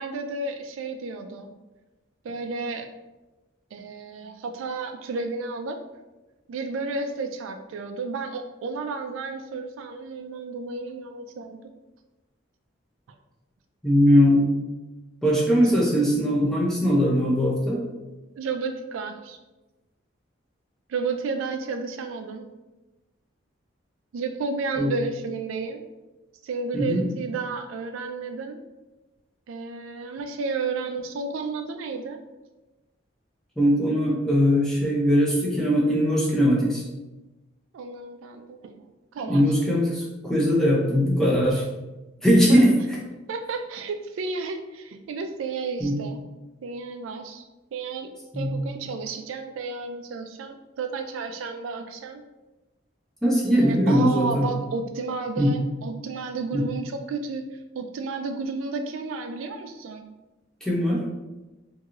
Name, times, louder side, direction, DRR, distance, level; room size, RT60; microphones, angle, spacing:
voice 1, 0.0-1.5 2.2-2.9 3.7-5.8 6.5-11.6 18.4-19.4 20.9-22.5 24.1-25.8 26.4-28.6 29.5-32.2 37.7-38.8 39.1-39.5 42.5-42.7 43.3-46.2 46.6-47.4 47.7-52.2 53.6-57.4 57.7-60.0, right 4 dB, 85° right, 6 dB, 0.3 m, -32 dB
voice 2, 13.8-14.5 15.2-17.8 24.8-24.9 26.7-27.1 33.6-36.8 39.3-41.6 42.2-42.7 45.8-46.0 48.3-48.6 53.2-54.5 55.4-55.5 56.5-56.7 60.6-61.0, equal, 5° left, -4 dB, 0.5 m, -20 dB
2.9 x 2.6 x 2.4 m, 1.1 s
head